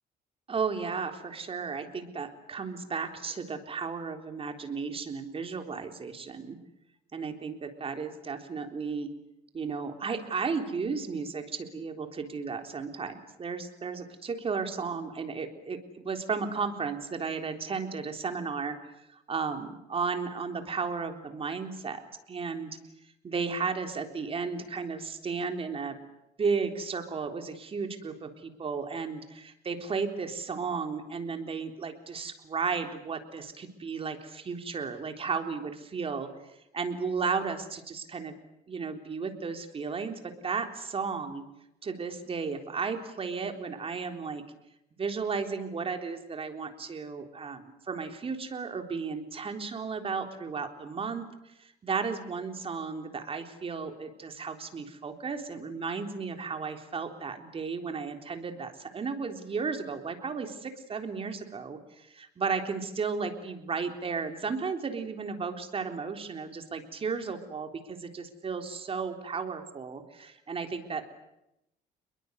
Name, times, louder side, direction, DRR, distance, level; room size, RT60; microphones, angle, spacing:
voice 1, 0.5-6.6 7.1-9.1 9.5-18.9 19.3-22.0 22.3-22.8 23.2-26.0 26.4-36.3 36.7-38.4 38.7-41.4 41.8-44.4 44.9-71.0, right 5 dB, 35° right, 6 dB, 3.7 m, -34 dB
28.0 x 22.0 x 8.2 m, 0.86 s
cardioid pair, 110°, 17 cm